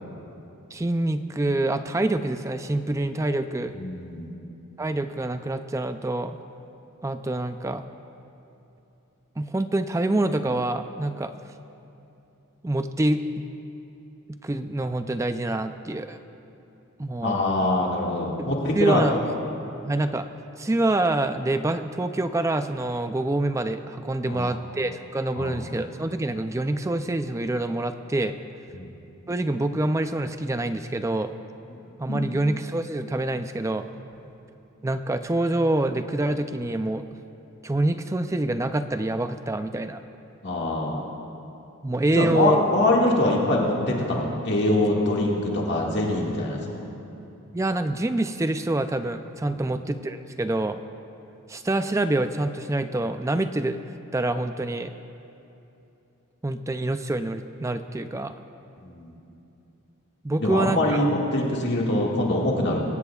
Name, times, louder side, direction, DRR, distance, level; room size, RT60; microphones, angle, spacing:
voice 1, 0.7-3.7 4.8-6.4 7.0-7.8 9.4-11.3 12.6-13.2 14.4-16.2 17.0-17.4 18.8-19.1 19.8-20.3 20.6-28.4 29.3-31.3 32.0-33.8 34.8-37.0 37.6-40.0 41.8-42.6 47.5-50.8 51.5-53.8 54.1-54.9 56.4-58.3 60.2-61.0, right 2 dB, 15° right, 9 dB, 0.4 m, -26 dB
voice 2, 3.7-4.3 17.2-19.2 24.3-24.6 25.4-25.5 28.7-28.9 32.1-32.4 40.4-41.0 42.1-46.9 49.5-49.8 58.8-59.1 60.4-62.8, left 1 dB, 55° left, -3 dB, 1.9 m, -24 dB
25.0 x 16.5 x 2.4 m, 2.9 s
head